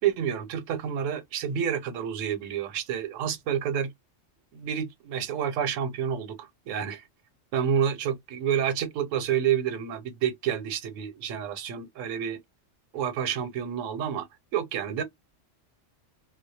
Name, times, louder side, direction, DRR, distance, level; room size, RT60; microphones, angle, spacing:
voice 1, 0.0-3.9 4.5-7.0 7.5-12.4 12.9-14.3 14.5-15.0, right 8 dB, 80° right, 1.0 m, -29 dB
2.3 x 2.0 x 2.7 m
omnidirectional pair, 1.3 m